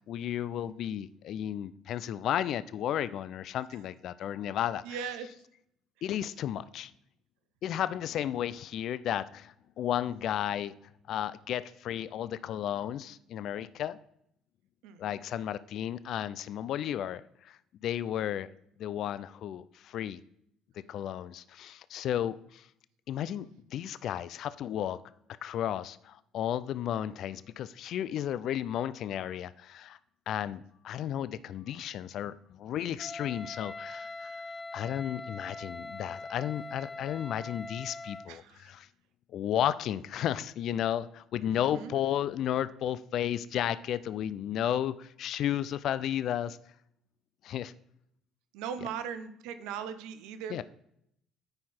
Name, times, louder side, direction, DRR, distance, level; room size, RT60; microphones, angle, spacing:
voice 1, 0.1-5.0 6.0-6.9 7.6-10.7 11.1-14.0 15.0-18.5 18.8-20.2 20.9-22.7 23.1-25.0 25.4-30.0 30.3-34.3 34.7-38.9 39.3-46.6 47.4-47.7 48.8-48.9 50.5-50.6, left 10 dB, 65° left, 0.3 m, -33 dB
voice 2, 4.8-5.3 14.8-15.1 38.3-38.7 41.5-41.9 48.5-50.6, right 7 dB, 80° right, 0.7 m, -39 dB
Wind instrument woodwind instrument, 33.0-38.3, left 2 dB, 20° left, 0.7 m, -42 dB
9.6 x 4.6 x 4.2 m
supercardioid pair, 75°, 0 cm